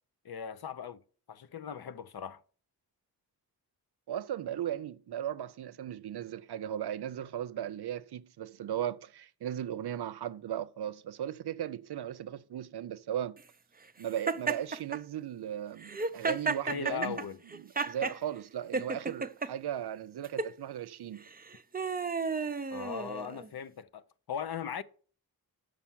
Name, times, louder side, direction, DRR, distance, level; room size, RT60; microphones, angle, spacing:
voice 1, 0.2-1.0 1.3-2.4 16.7-17.4 22.7-24.8, left 8 dB, 75° left, 0.7 m, -38 dB
voice 2, 4.1-13.4 14.0-17.2 17.5-21.2, right 10 dB, 90° right, 0.6 m, -37 dB
Laughter, 14.3-15.0 15.8-18.2 18.7-19.5 20.2-20.5 21.3-23.5, right 4 dB, 25° right, 0.5 m, -33 dB
6.7 x 5.7 x 7.3 m
wide cardioid pair, 95°, 38 cm